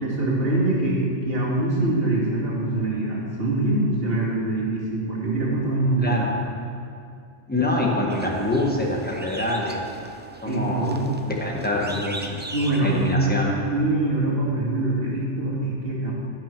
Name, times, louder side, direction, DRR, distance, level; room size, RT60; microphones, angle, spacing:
voice 1, 0.0-6.2 10.4-11.1 12.5-13.2 13.5-16.1, right 2 dB, 55° right, -6 dB, 2.7 m, -24 dB
voice 2, 7.5-9.8 10.4-10.9 11.3-12.4 12.8-13.5, left 1 dB, 10° left, -2 dB, 1.4 m, -25 dB
sound 1, 8.1-13.1, right 1 dB, 15° right, 0.5 m, -39 dB
14.0 x 6.0 x 6.0 m, 2.4 s
omnidirectional pair, 1.2 m